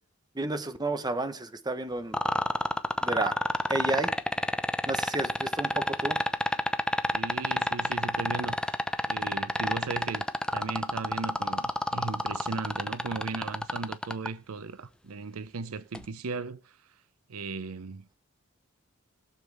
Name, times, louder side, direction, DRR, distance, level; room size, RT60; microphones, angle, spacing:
voice 1, 0.3-2.2 3.0-3.4 3.7-4.1 4.9-6.2, right 2 dB, 20° right, 1.0 m, -31 dB
sound 1, 2.1-14.3 15.9-16.1, left 1 dB, 5° left, 0.6 m, -28 dB
voice 2, 7.1-8.8 9.1-10.3 10.5-16.8 17.3-18.1, right 4 dB, 85° right, 0.6 m, -37 dB
21.0 x 7.2 x 3.4 m
head